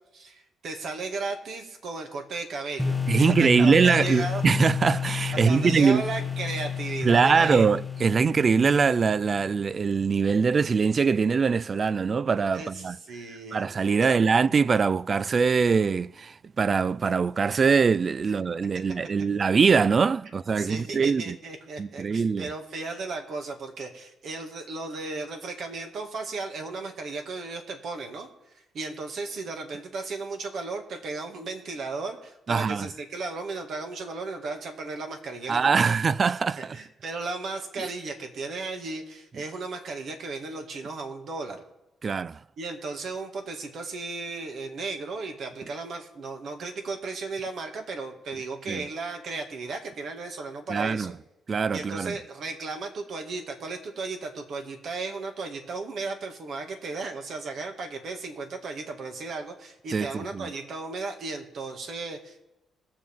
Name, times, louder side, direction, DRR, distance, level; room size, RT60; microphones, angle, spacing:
voice 1, 0.1-4.4 5.4-7.7 12.5-13.7 14.0-14.2 20.6-28.3 28.5-35.9 36.7-41.6 42.6-51.2 51.7-62.4, right 3 dB, 60° right, 2.1 m, -35 dB
sound 1, 2.8-9.6, left 7 dB, 5° left, 1.0 m, -31 dB
voice 2, 3.1-6.0 7.0-13.0 13.5-21.4 21.8-22.5 32.5-32.9 35.5-36.8 37.8-37.9 42.0-42.4 48.7-48.8 50.7-51.1 51.5-52.2 59.9-60.5, right 5 dB, 40° right, 0.4 m, -23 dB
21.5 x 7.7 x 3.6 m
cardioid pair, 90°, 0 cm